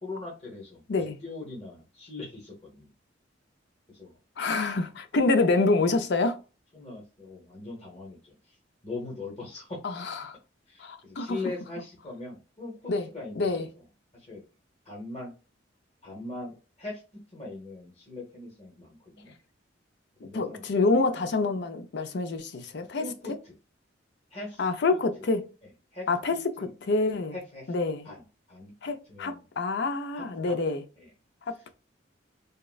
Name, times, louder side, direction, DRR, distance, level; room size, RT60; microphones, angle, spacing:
voice 1, 0.0-2.9 3.9-4.2 6.7-8.6 8.8-9.8 10.7-13.8 14.1-14.4 14.8-15.3 16.0-19.3 20.2-21.0 22.8-23.5 24.3-25.0 25.6-26.1 26.6-26.7 27.3-27.8 28.0-28.7 29.1-29.4 30.1-30.6 31.0-31.1 31.5-31.7, left 2 dB, 35° left, 1.0 m, -41 dB
voice 2, 4.4-6.4 10.2-10.4 10.8-11.4 12.9-13.1 13.4-13.7 20.3-23.0 24.6-25.4 26.1-26.4 26.9-27.3 27.7-28.0 28.8-30.8, left 3 dB, 65° left, 0.5 m, -26 dB
3.5 x 2.0 x 2.3 m
head